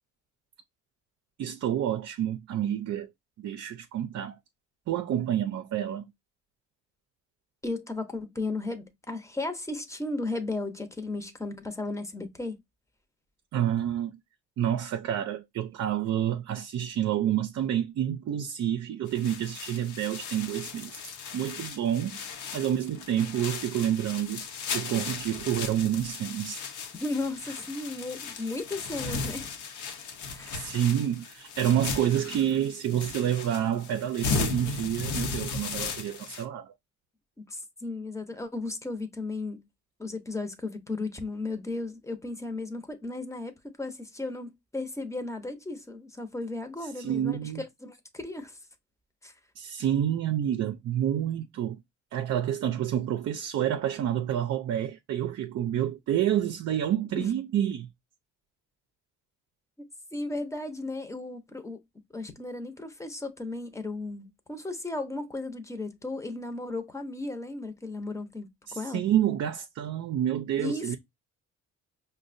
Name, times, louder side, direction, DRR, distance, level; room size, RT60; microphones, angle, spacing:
voice 1, 1.4-3.1 3.4-4.4 4.9-6.0 13.5-14.1 14.6-21.0 21.3-22.2 22.5-24.4 24.7-26.6 30.5-36.7 47.0-47.6 49.6-51.8 52.1-57.9 68.7-71.0, right 10 dB, 60° right, 0.5 m, -28 dB
voice 2, 7.6-12.6 27.0-29.5 30.3-30.7 37.4-39.6 40.0-48.6 49.2-49.3 57.1-57.3 59.8-61.8 62.1-69.0 70.6-71.0, left 2 dB, 10° left, 0.8 m, -35 dB
sound 1, 19.1-36.4, left 4 dB, 75° left, 0.8 m, -36 dB
5.1 x 2.2 x 2.5 m
cardioid pair, 90°, 30 cm